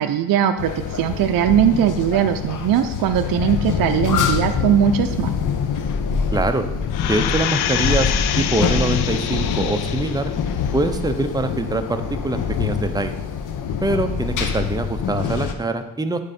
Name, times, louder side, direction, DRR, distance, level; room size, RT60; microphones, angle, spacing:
voice 1, 0.0-5.3, right 9 dB, 65° right, 7 dB, 0.5 m, -19 dB
sound 1, 0.6-15.5, left 6 dB, 55° left, 0.7 m, -25 dB
voice 2, 6.3-6.6 7.0-8.1 8.4-10.3 10.7-13.1 13.8-16.2, right 2 dB, 10° right, 7 dB, 0.5 m, -23 dB
sound 2, 6.9-10.3 10.8-10.9, left 10 dB, 90° left, 0.5 m, -26 dB
10.0 x 3.7 x 4.2 m, 0.90 s
cardioid pair, 90°, 37 cm